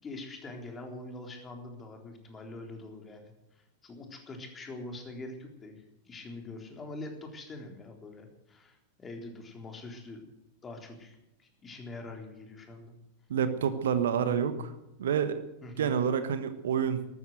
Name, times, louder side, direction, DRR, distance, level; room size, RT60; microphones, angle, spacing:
voice 1, 0.0-10.2 10.6-12.9 15.6-15.9, left 2 dB, 20° left, 3 dB, 3.7 m, -44 dB
voice 2, 13.3-14.7 15.0-15.4 15.8-17.1, right 8 dB, 60° right, 11 dB, 1.2 m, -28 dB
14.0 x 13.0 x 7.8 m, 0.90 s
figure-of-eight pair, 90°, 0 cm